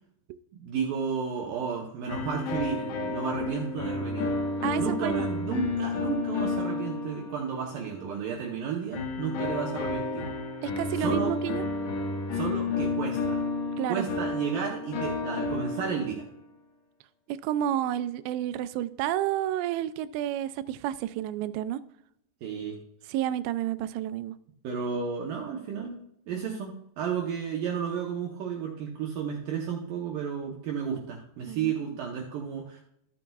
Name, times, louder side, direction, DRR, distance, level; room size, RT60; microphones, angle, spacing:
voice 1, 0.5-4.4 4.8-10.3 10.9-11.3 12.3-13.4 13.9-16.3 22.4-22.8 24.6-32.8, right 7 dB, 70° right, -1 dB, 2.2 m, -33 dB
sound 1, 2.1-7.9 8.9-16.3, left 3 dB, 85° left, 3.6 m, -31 dB
voice 2, 4.6-5.3 10.6-11.7 13.8-14.1 17.3-21.8 23.1-24.4 31.5-31.7, right 12 dB, 90° right, 14 dB, 2.7 m, -30 dB
14.5 x 8.3 x 2.3 m, 0.76 s
omnidirectional pair, 4.9 m